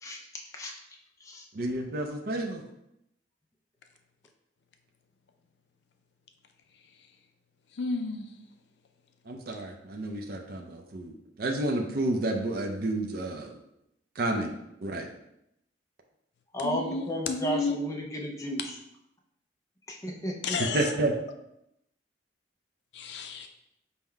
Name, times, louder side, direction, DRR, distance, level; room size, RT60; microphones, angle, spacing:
voice 1, 1.5-2.6 9.3-13.6 14.2-14.5 14.8-15.1 20.7-21.1, right 2 dB, 55° right, 2 dB, 0.5 m, -30 dB
voice 2, 7.8-8.3 16.6-17.8 20.4-20.9 22.9-23.5, left 4 dB, 65° left, 5 dB, 0.4 m, -31 dB
voice 3, 16.5-18.8 20.0-20.6, equal, 15° left, 0 dB, 0.5 m, -33 dB
5.5 x 2.1 x 4.5 m, 0.81 s
head